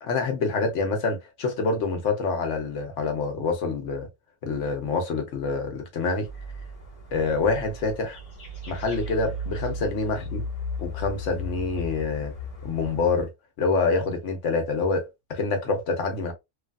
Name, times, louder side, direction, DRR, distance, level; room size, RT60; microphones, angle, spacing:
voice 1, 0.0-4.1 4.4-6.3 7.1-8.2 8.7-10.4 10.8-12.3 12.6-13.3 13.6-16.3, left 4 dB, 80° left, 1.2 m, -26 dB
sound 1, 6.2-13.2, left 1 dB, 35° left, 0.9 m, -36 dB
3.2 x 2.4 x 2.3 m
omnidirectional pair, 1.2 m